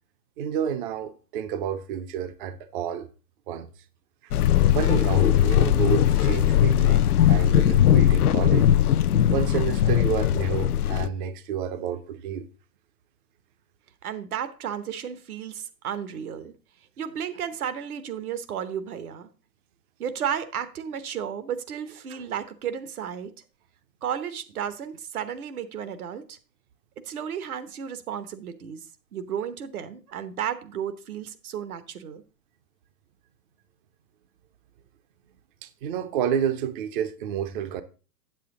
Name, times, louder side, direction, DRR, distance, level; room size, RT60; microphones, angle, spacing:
voice 1, 0.4-3.1 3.5-3.7 4.7-8.7 9.3-12.5 22.1-22.2 35.6-37.8, right 8 dB, 35° right, 0.6 m, -30 dB
sound 1, 4.3-11.1, left 11 dB, 65° left, 0.6 m, -19 dB
voice 2, 14.0-16.5 17.0-19.3 20.0-23.3 24.0-26.4 27.0-32.2, right 8 dB, 60° right, 1.1 m, -33 dB
8.1 x 7.6 x 3.7 m
figure-of-eight pair, 120°, 49 cm